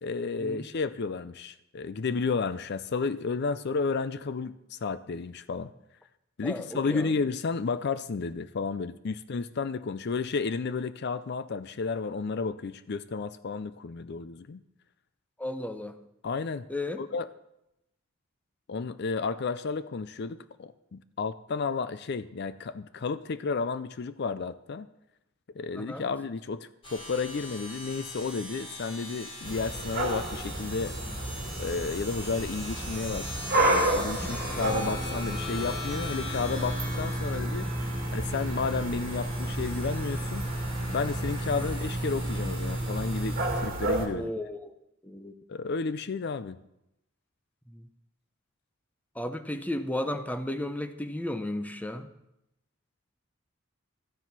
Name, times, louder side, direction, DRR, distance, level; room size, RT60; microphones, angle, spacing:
voice 1, 0.0-5.7 6.4-14.6 16.2-16.7 17.0-17.3 18.7-24.9 25.6-30.9 31.6-33.3 33.5-40.5 40.9-44.3 45.5-46.6, left 4 dB, 50° left, 14 dB, 0.4 m, -32 dB
voice 2, 6.4-7.1 15.4-16.0 16.7-17.0 25.8-26.0 34.2-34.4 41.6-41.7 44.1-44.7 45.0-45.3 47.7-47.8 49.2-52.1, left 1 dB, 5° left, 8 dB, 0.7 m, -34 dB
sound 1, 26.8-43.5, equal, 25° left, 3.4 m, -35 dB
sound 2, 29.4-44.1, right 2 dB, 45° right, 2.1 m, -33 dB
14.0 x 9.9 x 5.9 m, 0.85 s
head